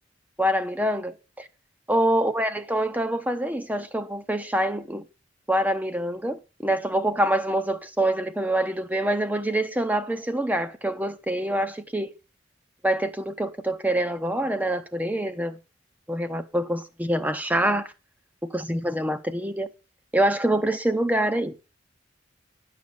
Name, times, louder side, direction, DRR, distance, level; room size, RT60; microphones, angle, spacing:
voice 1, 0.4-1.5 1.9-5.1 5.5-12.1 12.8-15.6 16.1-17.9 18.5-19.7 20.1-21.5, right 1 dB, 10° right, 0.7 m, -25 dB
10.5 x 6.6 x 6.9 m
head